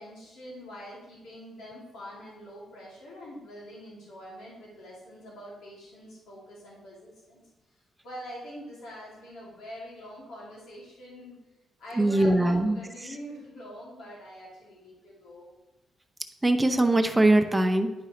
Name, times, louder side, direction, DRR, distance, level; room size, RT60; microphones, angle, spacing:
voice 1, 0.0-7.4 8.0-11.3 11.8-15.5, equal, 85° left, -5 dB, 2.5 m, -44 dB
voice 2, 12.0-13.1 16.4-17.9, right 1 dB, 10° right, 7 dB, 0.7 m, -22 dB
10.5 x 5.4 x 3.1 m, 1.1 s
cardioid pair, 105°, 0 cm